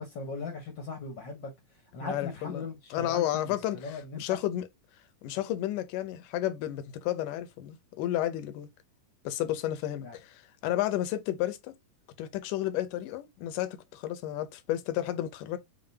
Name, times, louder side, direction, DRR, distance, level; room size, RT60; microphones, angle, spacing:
voice 1, 0.0-4.4 10.0-10.2, left 4 dB, 60° left, 1.2 m, -39 dB
voice 2, 2.0-2.6 2.9-3.8 4.2-4.7 5.2-8.7 9.3-11.7 12.2-15.6, left 13 dB, 80° left, 2.3 m, -32 dB
6.9 x 2.7 x 2.8 m
omnidirectional pair, 3.7 m